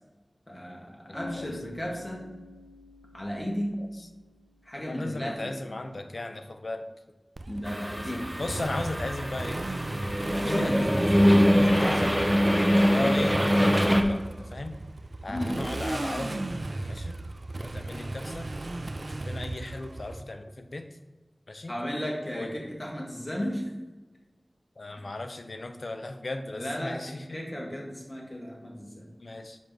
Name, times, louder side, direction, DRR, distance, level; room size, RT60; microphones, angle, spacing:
voice 1, 0.5-2.2 3.1-3.8 4.6-5.5 7.5-8.3 10.4-11.0 12.9-13.1 15.3-15.6 21.7-23.7 26.5-29.1, equal, 30° left, -3 dB, 2.3 m, -34 dB
voice 2, 1.1-1.5 3.8-3.9 4.7-6.9 8.0-9.6 10.3-12.4 12.9-14.7 15.2-16.5 16.9-17.2 17.6-18.5 19.1-20.9 21.5-21.8 22.3-22.5 24.8-27.4 29.2-29.6, left 2 dB, 80° left, 6 dB, 0.7 m, -36 dB
Bass guitar, 1.1-5.0, left 3 dB, 40° right, 1.1 m, -47 dB
Motorcycle, 7.4-20.2, right 2 dB, 65° right, 0.4 m, -36 dB
sound 1, 7.7-14.0, equal, 10° right, 1.0 m, -23 dB
5.4 x 5.2 x 6.1 m, 1.2 s
wide cardioid pair, 45°, 0 cm